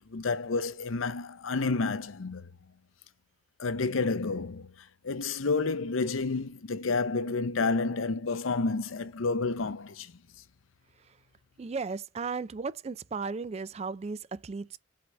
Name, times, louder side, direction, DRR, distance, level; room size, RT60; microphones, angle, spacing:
voice 1, 0.1-2.5 3.6-4.7 5.0-10.1, left 3 dB, 80° left, 0.7 m, -30 dB
voice 2, 11.6-14.8, right 4 dB, 30° right, 0.3 m, -35 dB
7.7 x 4.0 x 3.3 m
head